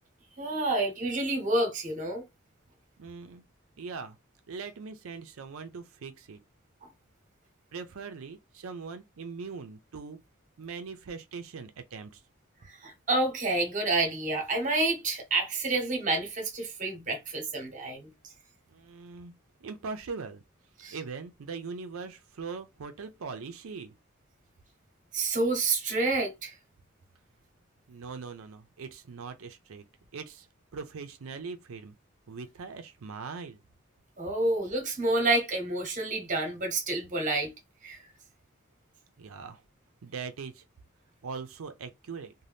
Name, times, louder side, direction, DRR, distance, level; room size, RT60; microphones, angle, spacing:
voice 1, 0.4-2.2 12.7-18.1 20.8-21.0 25.1-26.5 34.2-37.5 37.8-38.0, right 2 dB, 40° right, 0.9 m, -29 dB
voice 2, 3.0-3.4 3.8-4.2 4.5-6.4 7.7-10.2 10.6-12.2 18.7-19.3 19.6-20.4 20.9-23.9 27.9-29.8 30.1-30.5 30.7-31.9 32.3-33.6 39.2-39.6 40.0-40.6 41.2-42.3, right 5 dB, 85° right, 0.5 m, -41 dB
2.6 x 2.2 x 3.3 m
head